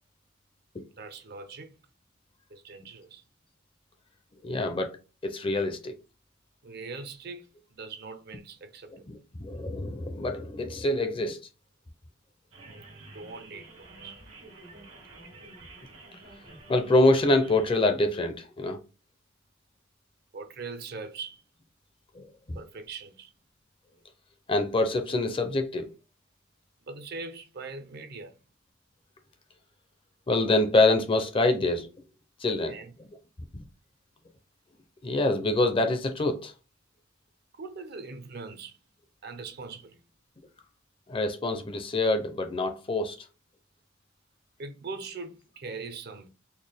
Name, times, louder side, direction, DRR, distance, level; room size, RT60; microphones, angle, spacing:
voice 1, 1.0-1.7 2.5-3.2 6.6-9.1 12.6-12.9 13.1-14.2 20.3-21.4 22.5-23.3 26.9-28.4 32.6-32.9 37.5-38.8 39.2-40.0 44.6-46.3, right 4 dB, 50° right, 0.6 m, -41 dB
voice 2, 4.4-5.0 5.2-5.9 8.9-11.4 16.7-18.8 22.1-22.6 24.5-25.9 30.3-31.9 32.4-32.8 33.5-33.6 35.0-36.5 41.1-43.2, left 2 dB, 25° left, 0.5 m, -25 dB
sound 1, 12.5-17.7, right 2 dB, 90° right, 1.4 m, -49 dB
4.2 x 2.2 x 3.4 m
head